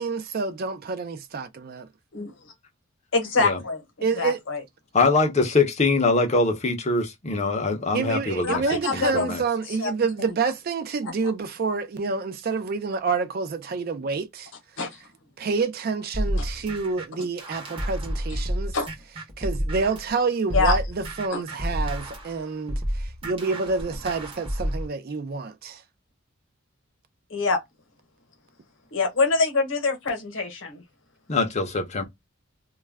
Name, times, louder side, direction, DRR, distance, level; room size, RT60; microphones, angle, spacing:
voice 1, 0.0-1.9 4.0-4.4 7.9-14.5 15.4-18.8 19.4-25.8, right 4 dB, 45° right, 0.4 m, -28 dB
voice 2, 3.1-3.8 4.2-4.6 8.4-9.3 9.8-9.9 14.8-14.9 16.4-16.5 18.7-18.9 20.5-20.8 21.3-21.4 27.3-27.6 28.9-30.8, left 4 dB, 60° left, 0.9 m, -24 dB
voice 3, 4.9-8.6 8.9-9.4 31.3-32.0, left 3 dB, 30° left, 0.5 m, -23 dB
sound 1, 16.1-20.1 20.5-24.9, equal, 25° right, 0.7 m, -30 dB
2.3 x 2.1 x 3.3 m
head